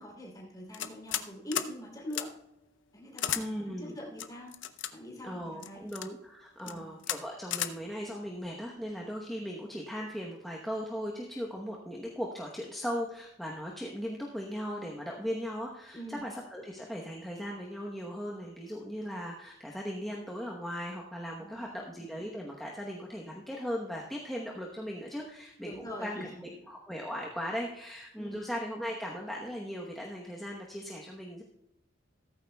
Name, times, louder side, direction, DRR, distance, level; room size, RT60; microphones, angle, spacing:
voice 1, 0.0-2.3 2.9-4.5 4.9-5.9 6.6-6.8 15.9-16.2 21.4-21.8 25.6-26.3 28.1-28.4, equal, 20° left, -3 dB, 3.2 m, -43 dB
sound 1, 0.7-1.3 1.5-1.7 2.1-2.3 3.2-3.4 4.2-4.9 5.6-6.1 6.6-6.7 7.0-7.2 7.5-7.7, left 11 dB, 80° left, 0.6 m, -33 dB
voice 2, 3.3-4.0 5.2-26.2 26.7-31.4, equal, ahead, -3 dB, 1.0 m, -38 dB
15.5 x 14.0 x 2.3 m, 0.84 s
head